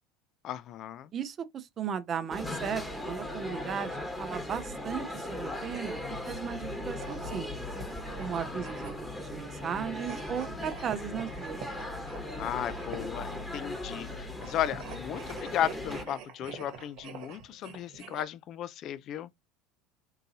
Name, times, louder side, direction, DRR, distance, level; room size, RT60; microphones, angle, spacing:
voice 1, 0.4-1.1 12.4-19.3, left 11 dB, 50° left, 0.3 m, -35 dB
voice 2, 1.1-7.5 8.2-11.6, right 8 dB, 40° right, 0.6 m, -36 dB
sound 1, 2.3-16.0, left 1 dB, 10° left, 1.1 m, -38 dB
sound 2, 6.9-9.2 10.0-13.2 14.3-18.2, right 6 dB, 65° right, 1.0 m, -46 dB
3.7 x 2.7 x 2.8 m
hypercardioid pair, 85°, 0 cm